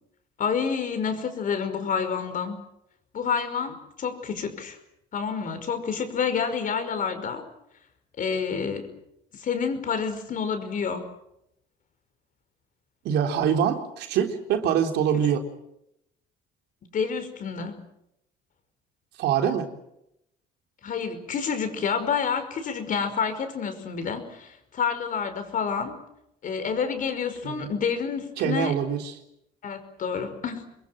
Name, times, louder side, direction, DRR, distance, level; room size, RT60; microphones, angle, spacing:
voice 1, 0.4-2.6 3.1-4.8 5.1-7.4 8.2-8.9 9.4-11.0 15.1-15.2 16.9-17.8 20.8-26.0 26.4-28.8 29.6-30.7, left 6 dB, 50° left, 8 dB, 5.4 m, -28 dB
voice 2, 13.0-15.4 19.2-19.7 27.4-27.7 28.4-29.1, right 8 dB, 80° right, 5 dB, 3.8 m, -24 dB
27.5 x 22.0 x 7.8 m, 0.81 s
cardioid pair, 110°, 17 cm